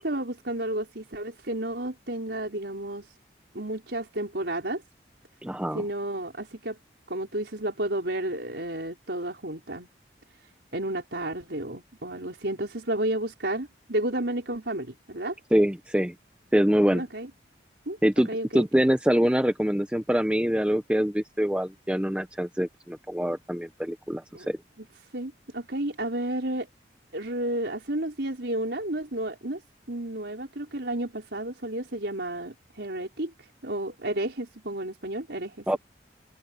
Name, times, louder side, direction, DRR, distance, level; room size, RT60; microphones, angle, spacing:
voice 1, 0.0-3.1 3.5-4.8 5.7-6.8 7.1-9.9 10.7-15.3 16.9-17.3 17.9-18.0 18.2-18.7 24.3-24.5 24.8-24.9 25.1-26.7 27.1-29.6 29.9-33.3 33.6-35.8, right 1 dB, 70° right, 4.7 m, -32 dB
voice 2, 5.4-5.8 15.5-16.1 16.5-17.0 18.0-24.6 35.7-35.8, equal, 5° right, 0.7 m, -24 dB
open air
head